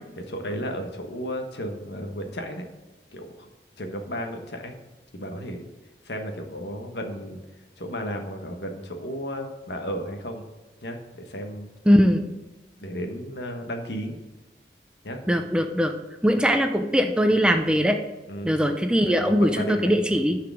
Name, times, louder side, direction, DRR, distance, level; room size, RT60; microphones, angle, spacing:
voice 1, 0.2-2.7 3.1-3.5 3.8-4.8 5.1-5.6 6.0-7.4 7.8-10.4 10.8-11.7 12.8-14.2 15.0-15.2 18.3-18.5 19.0-20.2, equal, 75° left, 4 dB, 1.3 m, -33 dB
voice 2, 11.9-12.2 15.3-15.9 16.2-18.0 18.4-20.4, equal, 5° right, 5 dB, 0.5 m, -21 dB
10.5 x 4.9 x 6.2 m, 1.1 s
head